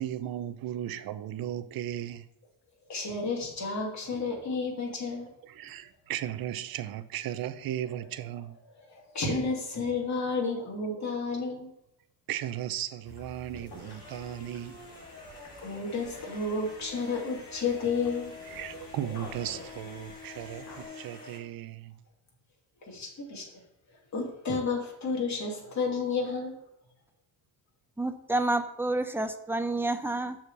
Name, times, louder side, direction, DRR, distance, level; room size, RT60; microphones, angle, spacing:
voice 1, 0.0-2.3 5.4-8.6 12.3-14.9 18.5-22.0, right 12 dB, 65° right, 0.7 m, -36 dB
voice 2, 2.9-5.3 8.8-11.7 15.6-18.3 22.8-23.4 24.1-26.5, left 4 dB, 45° left, 2.7 m, -31 dB
sound 1, 13.0-20.8, left 2 dB, 65° left, 2.8 m, -50 dB
sound 2, 13.7-21.4, left 4 dB, 10° left, 3.5 m, -47 dB
voice 3, 28.0-30.4, right 2 dB, 5° right, 0.6 m, -29 dB
7.0 x 4.4 x 6.8 m
cardioid pair, 110°, 39 cm